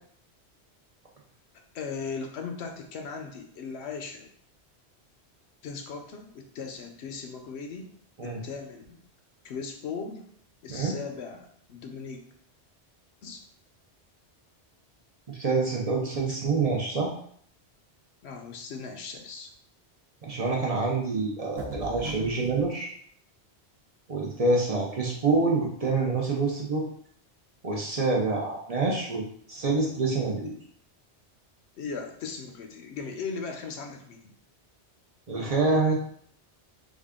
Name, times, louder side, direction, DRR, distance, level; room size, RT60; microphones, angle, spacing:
voice 1, 1.7-4.3 5.6-7.9 8.2-9.0 9.4-10.2 10.6-12.2 13.2-13.4 18.2-19.5 31.8-34.3, left 5 dB, 75° left, 4 dB, 0.9 m, -38 dB
voice 2, 15.3-17.1 20.2-22.9 24.1-26.8 27.6-30.5 35.3-35.9, right 3 dB, 45° right, -2 dB, 0.6 m, -26 dB
sound 1, 21.6-22.7, right 4 dB, 75° right, 0.9 m, -38 dB
3.6 x 2.3 x 3.5 m, 0.62 s
omnidirectional pair, 1.1 m